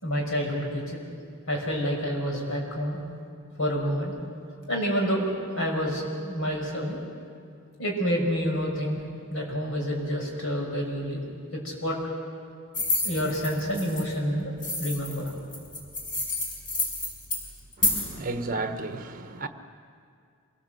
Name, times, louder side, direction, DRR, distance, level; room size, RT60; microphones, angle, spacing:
voice 1, 0.0-1.0 1.5-3.0 3.6-4.1 4.7-5.3 5.6-7.0 7.8-9.0 9.3-11.2 11.5-12.0 13.0-15.3 18.1-18.2, equal, 65° left, 5.6 m, -28 dB
sound 1, 12.7-14.0 14.6-18.1, left 2 dB, 40° left, 5.6 m, -29 dB
voice 2, 17.8-19.5, right 3 dB, 40° right, 1.2 m, -33 dB
26.5 x 19.5 x 7.8 m
head